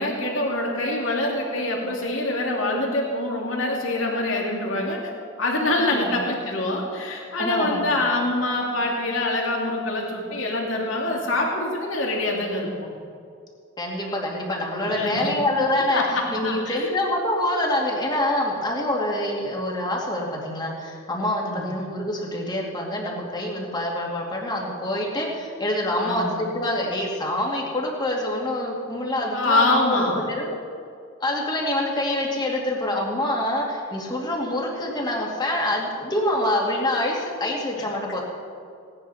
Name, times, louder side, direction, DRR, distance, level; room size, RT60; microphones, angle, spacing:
voice 1, 0.0-5.0 5.4-12.9 14.8-15.3 15.6-15.7 15.9-16.9 21.4-21.7 25.9-26.4 29.3-30.3 37.7-37.8, left 2 dB, 75° left, -1 dB, 2.7 m, -25 dB
voice 2, 5.8-6.2 7.4-8.0 13.8-30.5 31.2-38.2, left 1 dB, 20° left, -1 dB, 2.4 m, -26 dB
17.5 x 10.0 x 5.7 m, 2.3 s
head